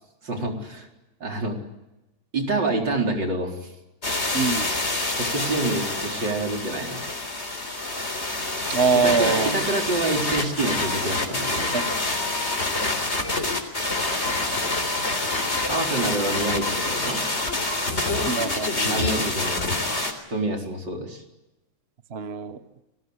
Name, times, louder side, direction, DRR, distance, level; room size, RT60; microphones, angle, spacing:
voice 1, 0.2-0.9 1.2-1.6 2.3-3.6 5.2-7.0 9.0-11.7 15.7-17.2 18.9-19.7 20.3-21.2, right 2 dB, 55° right, 2 dB, 5.0 m, -27 dB
sound 1, 4.0-20.1, left 2 dB, 30° left, 3.9 m, -26 dB
voice 2, 4.3-4.7 8.7-9.6 11.7-12.0 16.0-16.2 18.2-19.3 22.1-22.6, right 5 dB, 40° right, 10 dB, 1.1 m, -24 dB
30.0 x 20.5 x 8.2 m, 0.99 s
omnidirectional pair, 2.3 m